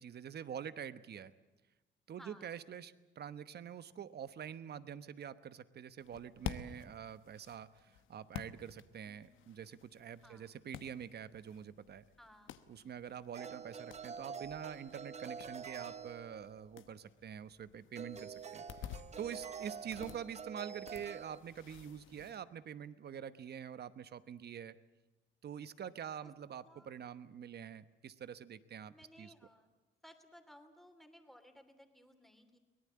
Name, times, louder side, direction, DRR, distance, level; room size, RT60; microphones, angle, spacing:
voice 1, 0.0-1.3 2.1-7.7 8.1-12.0 12.7-24.7 25.4-29.3, right 8 dB, 55° right, 14 dB, 1.1 m, -46 dB
voice 2, 2.2-2.5 9.0-9.4 10.2-10.5 12.2-12.5 26.6-27.0 28.9-29.7 30.0-32.6, equal, ahead, 6 dB, 3.0 m, -59 dB
sound 1, 6.0-22.4, left 10 dB, 80° left, 1.1 m, -52 dB
sound 2, 13.3-16.7 17.9-21.4, right 6 dB, 35° right, 0.8 m, -47 dB
23.5 x 18.5 x 8.7 m, 1.1 s
cardioid pair, 90°, 20 cm